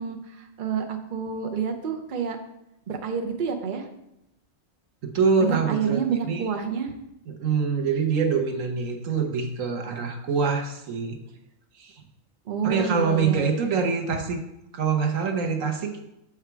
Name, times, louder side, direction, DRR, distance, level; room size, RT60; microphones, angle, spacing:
voice 1, 0.0-2.4 2.9-3.9 5.4-6.9 12.5-13.5, right 6 dB, 45° right, 3 dB, 0.8 m, -28 dB
voice 2, 5.0-6.0 6.2-6.5 7.3-11.2 11.8-12.0 12.6-14.4 14.7-16.0, right 5 dB, 85° right, 4 dB, 1.3 m, -25 dB
7.1 x 5.0 x 4.6 m, 0.83 s
omnidirectional pair, 1.3 m